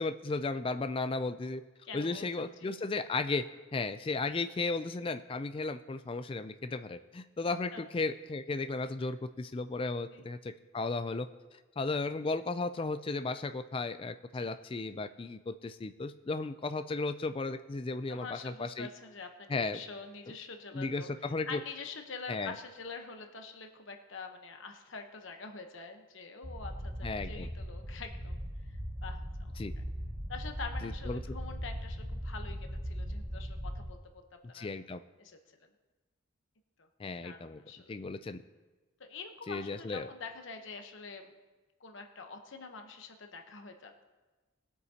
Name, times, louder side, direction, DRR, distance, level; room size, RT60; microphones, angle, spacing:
voice 1, 0.0-1.6 1.9-3.4 3.7-11.3 11.8-18.9 19.5-19.8 20.7-21.6 22.3-22.5 27.0-27.5 29.6-29.7 30.8-31.2 34.5-35.0 37.0-37.6 37.9-38.4 39.5-40.1, left 3 dB, 25° left, 10 dB, 0.3 m, -35 dB
voice 2, 1.8-2.7 7.7-7.8 10.1-10.3 14.3-14.5 18.1-21.1 21.5-26.7 27.0-28.4 28.7-29.6 30.3-34.7 35.2-35.7 36.8-36.9 37.2-38.0 39.0-41.3 41.8-44.0, left 4 dB, 65° left, 4 dB, 1.0 m, -46 dB
sound 1, 26.4-33.9, equal, 50° right, 2.3 m, -39 dB
21.0 x 8.2 x 2.9 m, 1.3 s
head